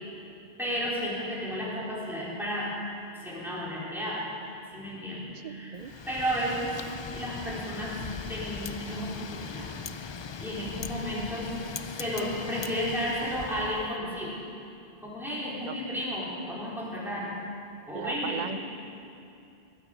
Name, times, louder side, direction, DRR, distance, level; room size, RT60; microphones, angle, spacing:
voice 1, 0.6-2.7 3.1-4.2 4.7-5.8 6.1-6.9 7.1-7.9 8.3-9.7 10.4-11.6 12.0-14.3 15.0-17.3 17.9-18.4, equal, ahead, -7 dB, 3.9 m, -33 dB
voice 2, 5.4-5.9 15.6-15.8 17.9-18.6, right 7 dB, 50° right, 9 dB, 0.7 m, -37 dB
Wind, 5.8-13.9, left 6 dB, 50° left, 0.3 m, -40 dB
16.5 x 9.5 x 7.6 m, 2.6 s
omnidirectional pair, 1.0 m